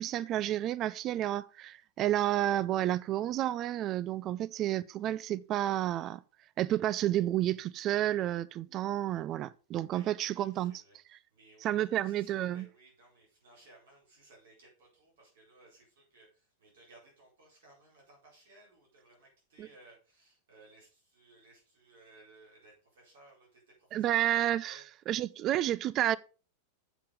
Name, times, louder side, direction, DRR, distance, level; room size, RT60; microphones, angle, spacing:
voice 1, 0.0-6.2 6.6-10.8 11.6-12.7 19.6-19.7 23.9-26.2, right 13 dB, 35° right, 0.4 m, -31 dB
voice 2, 9.9-24.8, right 2 dB, 60° right, 4.6 m, -60 dB
7.5 x 7.0 x 5.1 m
figure-of-eight pair, 90°, 0 cm